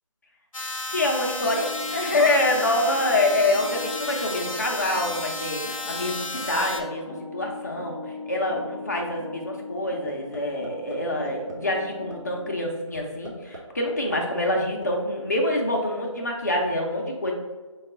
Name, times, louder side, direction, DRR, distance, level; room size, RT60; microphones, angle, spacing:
sound 1, 0.5-6.8, left 2 dB, 85° left, 0.7 m, -33 dB
voice 1, 0.9-8.0 8.3-17.3, left 1 dB, 30° left, 0 dB, 0.6 m, -26 dB
sound 2, 1.4-12.7, left 2 dB, 15° right, 0.7 m, -40 dB
sound 3, 10.1-10.4 10.6-11.0 11.3-11.5 11.9-12.1 12.5-12.6 12.9-13.6 13.9-14.9, right 1 dB, 70° right, 1.0 m, -40 dB
4.7 x 2.3 x 3.7 m, 1.3 s
figure-of-eight pair, 165°, 17 cm